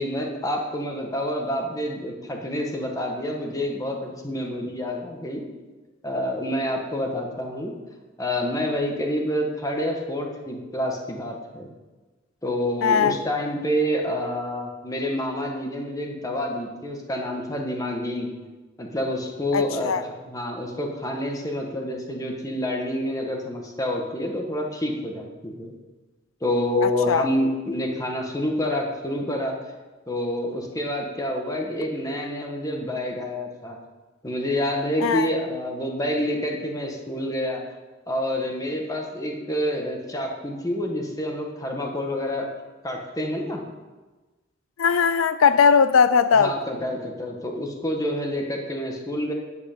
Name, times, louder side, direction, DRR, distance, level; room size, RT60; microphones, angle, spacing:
voice 1, 0.0-5.4 6.0-7.7 8.2-11.7 12.4-18.3 18.8-25.7 26.4-29.6 30.1-33.8 34.2-37.6 38.1-42.5 42.8-43.6 46.4-49.3, left 1 dB, 20° left, 1.7 m, -28 dB
voice 2, 12.8-13.2 19.5-20.0 26.8-27.3 35.0-35.3 44.8-46.5, left 6 dB, 85° left, 0.5 m, -19 dB
10.0 x 8.4 x 6.8 m
head